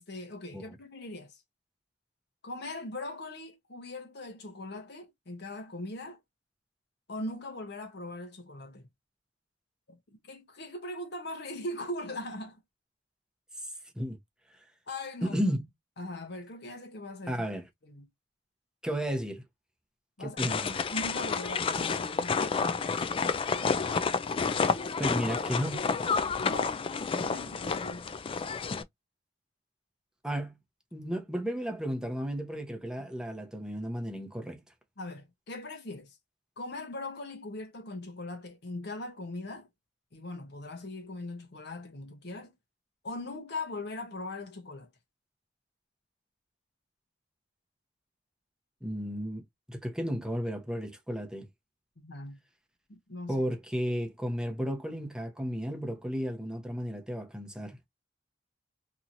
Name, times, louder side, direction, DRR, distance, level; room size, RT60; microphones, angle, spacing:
voice 1, 0.0-1.4 2.4-6.2 7.1-8.9 10.1-12.6 14.9-15.4 16.0-17.4 17.8-18.1 20.2-20.5 20.9-22.5 26.4-26.9 27.1-28.0 35.0-36.2 36.6-39.7 40.1-42.5 43.0-44.9 52.0-52.4 52.9-53.4, left 2 dB, 60° left, 0.9 m, -40 dB
voice 2, 15.2-15.7 17.3-17.6 18.8-19.4 20.2-20.8 25.0-25.8 30.2-30.6 30.9-34.6 48.8-49.4 49.7-51.5 53.3-57.8, equal, 5° right, 0.8 m, -33 dB
sound 1, 20.4-28.8, left 5 dB, 30° left, 0.3 m, -30 dB
2.9 x 2.8 x 2.5 m
head